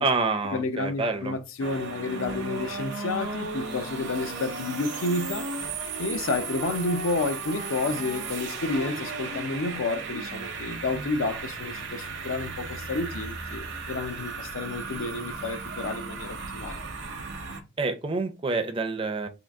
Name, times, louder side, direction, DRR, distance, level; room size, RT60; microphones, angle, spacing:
voice 1, 0.0-1.4 17.8-19.3, right 3 dB, 25° right, 0.5 m, -27 dB
voice 2, 0.5-5.5 6.0-16.8, left 3 dB, 75° left, 0.5 m, -30 dB
sound 1, 1.6-17.6, right 4 dB, 60° right, 0.7 m, -35 dB
3.7 x 2.3 x 3.5 m
head